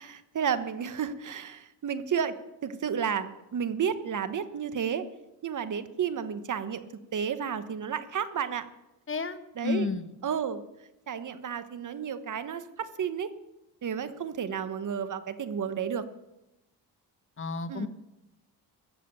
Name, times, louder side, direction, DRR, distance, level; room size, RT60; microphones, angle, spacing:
voice 1, 0.0-2.4 2.6-5.1 5.4-6.8 7.1-8.7 9.6-9.9 10.2-10.6 11.1-13.3 13.8-16.0 17.7-17.9, right 7 dB, 45° right, 12 dB, 1.1 m, -32 dB
voice 2, 9.1-9.4 9.6-10.0 17.4-17.9, left 4 dB, 30° left, 12 dB, 0.9 m, -30 dB
14.0 x 7.5 x 8.9 m, 0.94 s
cardioid pair, 90°, 41 cm